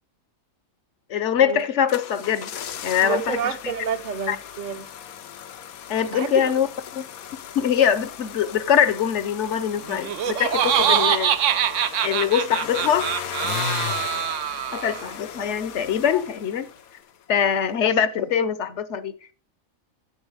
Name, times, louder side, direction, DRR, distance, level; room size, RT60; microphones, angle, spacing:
voice 1, 1.1-2.5 2.8-3.4 4.3-4.4 5.9-6.7 7.5-11.3 12.0-13.1 14.7-16.7 17.3-19.1, left 8 dB, 60° left, 1.0 m, -23 dB
sound 1, 1.6-17.1 17.4-17.5, left 9 dB, 85° left, 1.2 m, -36 dB
voice 2, 3.0-4.9 6.1-6.5 10.7-11.1, right 7 dB, 40° right, 0.9 m, -29 dB
Laughter, 9.9-15.1, right 10 dB, 65° right, 1.0 m, -24 dB
9.6 x 7.9 x 4.8 m
omnidirectional pair, 1.4 m